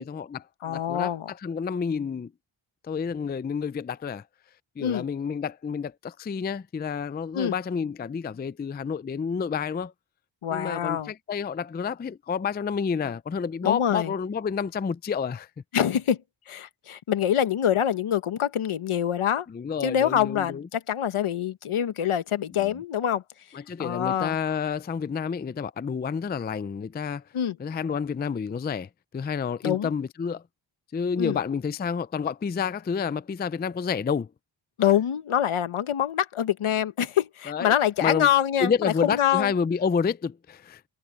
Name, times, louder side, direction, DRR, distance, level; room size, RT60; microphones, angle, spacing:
voice 1, 0.0-2.3 2.8-4.2 4.8-9.9 10.5-15.5 19.5-20.7 22.6-22.7 23.5-27.2 27.6-30.4 30.9-34.3 37.5-37.7 38.0-38.3 38.6-40.8, left 6 dB, 20° left, 0.3 m, -29 dB
voice 2, 0.6-1.3 4.8-5.0 7.3-7.5 10.4-11.1 13.6-14.1 15.7-16.2 16.5-19.5 19.8-23.2 23.8-24.3 27.3-27.6 29.6-29.9 31.2-31.4 34.8-39.5, left 10 dB, 75° left, 1.2 m, -25 dB
wide cardioid pair, 145°, 50 cm